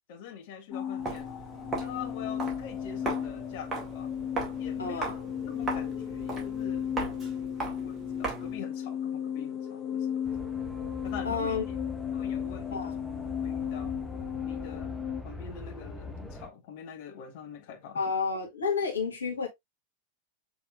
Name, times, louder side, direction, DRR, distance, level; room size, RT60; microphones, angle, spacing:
voice 1, 0.1-1.3 1.8-4.1 4.5-5.1 5.4-10.2 11.0-11.6 12.1-13.1 13.4-13.9 14.4-14.9 15.2-18.0, left 7 dB, 50° left, 1.3 m, -44 dB
sound 1, 0.7-15.2, left 9 dB, 25° left, 1.3 m, -35 dB
Walk footsteps, 1.0-8.6, right 3 dB, 15° right, 2.2 m, -38 dB
voice 2, 4.8-5.2 11.2-11.6 12.7-13.0 17.9-19.5, left 5 dB, 75° left, 1.2 m, -30 dB
sound 2, 10.2-16.5, left 2 dB, ahead, 0.8 m, -42 dB
6.3 x 3.4 x 2.4 m
figure-of-eight pair, 90°, 0 cm